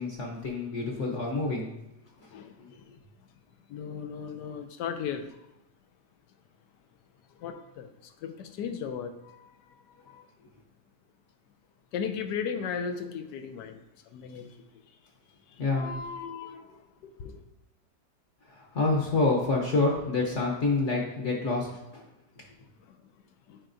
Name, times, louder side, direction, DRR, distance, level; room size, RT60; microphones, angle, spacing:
voice 1, 0.0-1.7 2.6-2.9 15.6-15.9 18.4-22.0, left 3 dB, 50° left, 0 dB, 1.1 m, -28 dB
voice 2, 3.7-5.3 7.4-7.9 8.2-9.5 10.1-10.2 11.9-13.8 14.1-14.5 15.7-16.8 17.2-17.4 23.5-23.6, left 7 dB, 80° left, 8 dB, 1.2 m, -36 dB
8.9 x 4.5 x 2.6 m, 0.92 s
omnidirectional pair, 1.8 m